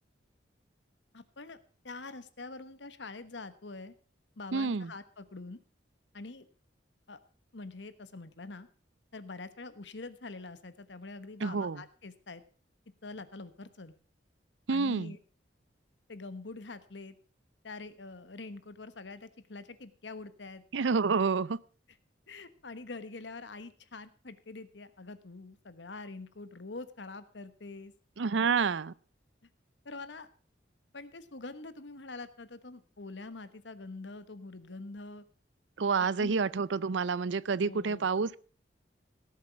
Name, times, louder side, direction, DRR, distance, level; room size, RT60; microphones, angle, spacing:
voice 1, 1.1-1.6 1.8-3.9 4.4-5.6 6.1-6.5 7.1-7.2 7.5-8.7 9.1-12.4 13.0-13.9 14.7-15.2 16.1-17.2 17.6-20.6 22.3-27.9 28.3-28.4 29.8-30.3 30.9-35.2 36.2-36.4 37.6-38.1, left 3 dB, 75° left, 1.2 m, -45 dB
voice 2, 4.5-4.9 11.4-11.8 14.7-15.1 20.7-21.6 28.2-28.9 35.8-38.4, right 5 dB, 80° right, 0.5 m, -28 dB
17.5 x 7.4 x 6.0 m
head